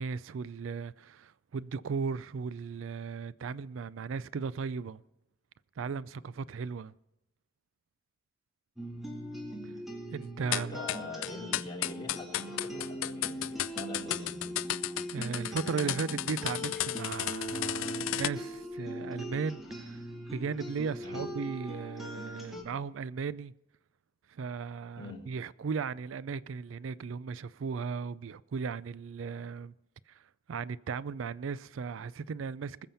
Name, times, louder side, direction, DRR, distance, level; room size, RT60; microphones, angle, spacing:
voice 1, 0.0-5.0 5.8-6.9 9.6-9.7 10.1-10.8 15.1-23.5 24.3-29.7 30.1-30.2 30.5-32.9, right 5 dB, 80° right, 0.4 m, -36 dB
sound 1, 8.8-22.6, equal, ahead, 2.0 m, -40 dB
voice 2, 10.4-14.7 21.0-21.3 25.0-25.2, left 2 dB, 20° left, 2.8 m, -44 dB
sound 2, 10.5-18.3, left 14 dB, 80° left, 0.4 m, -34 dB
20.5 x 7.2 x 5.6 m
head